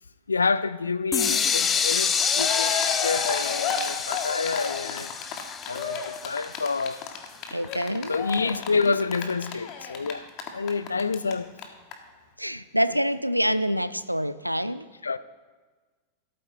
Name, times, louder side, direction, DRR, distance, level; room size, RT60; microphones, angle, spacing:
voice 1, 0.3-2.7 3.0-5.1 5.7-7.0 8.1-10.2 10.5-11.5 13.5-13.6 15.0-15.2, left 4 dB, 75° left, 0.5 m, -28 dB
sound 1, 1.1-6.9, left 6 dB, 20° left, 0.7 m, -27 dB
Cheering, 1.9-2.0 2.2-11.3 11.6-11.7 11.9-12.0, left 7 dB, 40° left, 1.7 m, -32 dB
voice 2, 7.5-8.2 12.4-14.9, equal, 90° right, 0.5 m, -26 dB
13.0 x 13.0 x 3.9 m
figure-of-eight pair, 90°, 0 cm